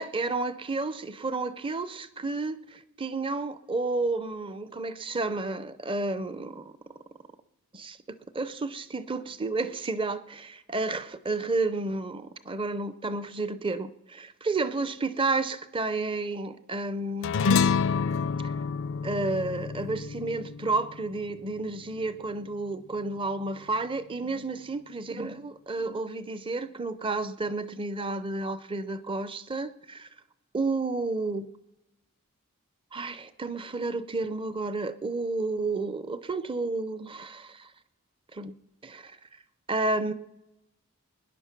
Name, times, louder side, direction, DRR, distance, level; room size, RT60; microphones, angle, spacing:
voice 1, 0.0-6.7 7.7-8.0 8.3-17.4 19.0-30.1 30.5-31.5 32.9-37.7 38.3-38.5 38.8-39.2 39.7-40.1, right 3 dB, 25° right, 0.5 m, -31 dB
sound 1, 17.2-21.9, left 5 dB, 55° left, 0.4 m, -28 dB
21.5 x 10.0 x 5.9 m
head